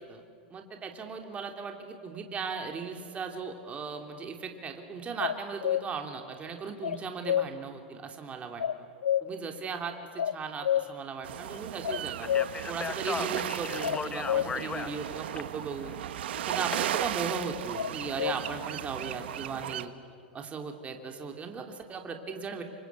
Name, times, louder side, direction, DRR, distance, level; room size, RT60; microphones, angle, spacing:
voice 1, 0.5-8.9 9.2-12.3 12.7-15.9 16.3-19.9 20.3-22.6, right 5 dB, 25° right, 4 dB, 3.0 m, -37 dB
sound 1, 5.2-5.9 6.8-7.5 8.6-9.4 10.2-10.9 11.8-12.5 13.8-14.5 17.7-18.4, left 10 dB, 90° left, 0.6 m, -28 dB
sound 2, 11.2-19.9, right 11 dB, 75° right, 1.2 m, -36 dB
Speech, 12.2-16.8, left 5 dB, 15° left, 1.0 m, -37 dB
28.5 x 25.5 x 8.3 m, 2.3 s
hypercardioid pair, 120°, 6 cm